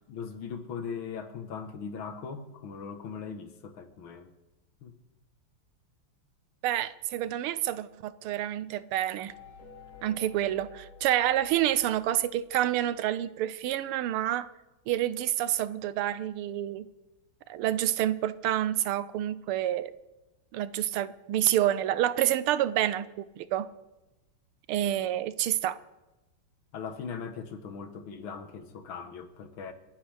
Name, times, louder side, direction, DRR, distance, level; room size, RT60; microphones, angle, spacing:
voice 1, 0.1-4.3 4.8-5.0 26.7-29.7, left 6 dB, 70° left, 1.9 m, -39 dB
voice 2, 6.6-9.3 10.0-14.5 14.9-16.9 17.5-19.9 20.5-23.7 24.7-25.8, right 12 dB, 85° right, 1.6 m, -28 dB
sound 1, 9.3-13.0, left 4 dB, 40° left, 4.7 m, -51 dB
28.5 x 11.5 x 3.4 m
omnidirectional pair, 2.4 m